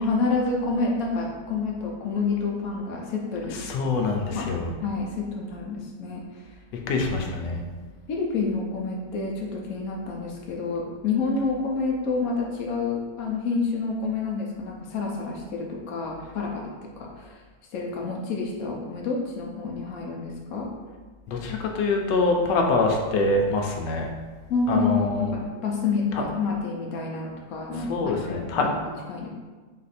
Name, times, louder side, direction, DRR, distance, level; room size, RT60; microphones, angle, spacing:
voice 1, 0.0-3.6 4.3-6.4 8.1-17.4 17.7-20.7 24.5-28.7 29.1-29.3, left 4 dB, 65° left, 0 dB, 1.0 m, -28 dB
voice 2, 3.5-4.7 6.9-7.6 21.3-24.1 24.7-25.3 26.1-26.2 27.9-28.7, left 3 dB, 80° left, 2 dB, 1.3 m, -25 dB
4.0 x 2.6 x 4.1 m, 1.3 s
omnidirectional pair, 1.9 m